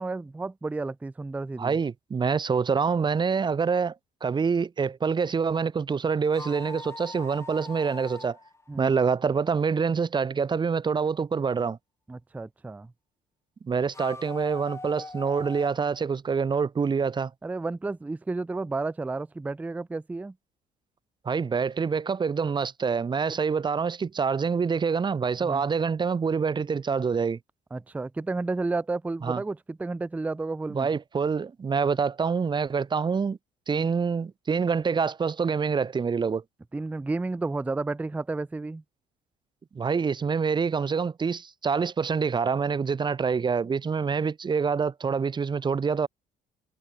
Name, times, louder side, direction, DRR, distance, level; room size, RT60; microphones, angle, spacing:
voice 1, 0.0-1.7 8.7-9.0 12.1-12.9 17.4-20.3 25.4-25.6 27.7-30.9 36.7-38.8, right 3 dB, 10° right, 0.4 m, -32 dB
voice 2, 1.6-3.9 4.2-8.4 8.8-11.8 13.6-17.3 21.2-27.4 29.2-29.4 30.7-33.4 33.7-36.4 39.7-46.1, right 5 dB, 25° right, 1.1 m, -26 dB
sound 1, 6.2-9.5 13.9-16.0, left 3 dB, 15° left, 5.3 m, -42 dB
cardioid pair, 110°, 17 cm